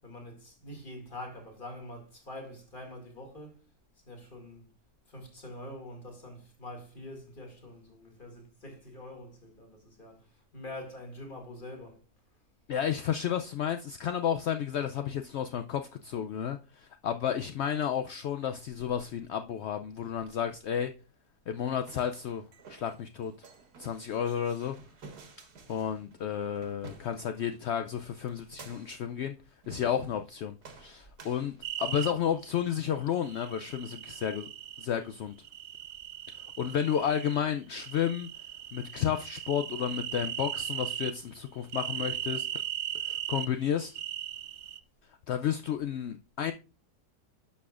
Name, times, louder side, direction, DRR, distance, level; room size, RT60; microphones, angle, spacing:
voice 1, 0.0-3.6 4.1-4.7 5.1-12.0 27.4-27.5, left 1 dB, 35° left, 2.4 m, -45 dB
voice 2, 12.7-20.9 21.5-22.4 22.7-23.3 23.8-24.8 25.7-29.3 29.7-34.5 34.8-35.3 36.3-38.3 38.7-42.6 43.0-44.0 45.3-46.5, left 9 dB, 75° left, 0.6 m, -32 dB
sound 1, 21.6-27.6 28.3-29.1 29.6-30.3 30.6-32.1, right 4 dB, 85° right, 2.0 m, -52 dB
sound 2, 31.6-32.1 33.3-34.9 35.4-37.4 37.7-41.2 41.7-43.5 43.9-44.8, right 11 dB, 65° right, 0.6 m, -38 dB
11.0 x 6.3 x 2.4 m
omnidirectional pair, 1.6 m